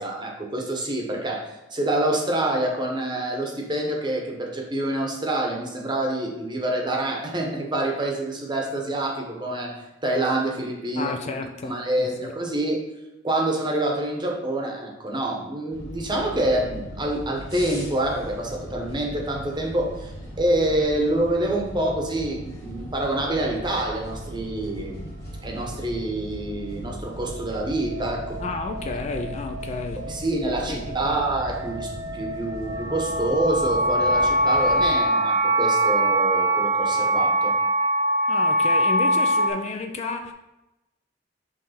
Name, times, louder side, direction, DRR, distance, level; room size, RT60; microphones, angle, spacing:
voice 1, 0.0-11.2 11.6-12.8 13.2-20.1 20.4-25.1 25.4-28.4 30.1-37.5, right 1 dB, 25° right, 1.0 m, -26 dB
voice 2, 11.0-12.3 28.4-30.1 30.7-30.8 31.0-31.2 38.3-40.3, left 3 dB, 40° left, 0.4 m, -31 dB
sound 1, 15.7-34.9, equal, 15° left, 1.4 m, -38 dB
sound 2, 26.7-39.5, right 1 dB, 50° right, 0.9 m, -24 dB
5.5 x 3.3 x 5.7 m
head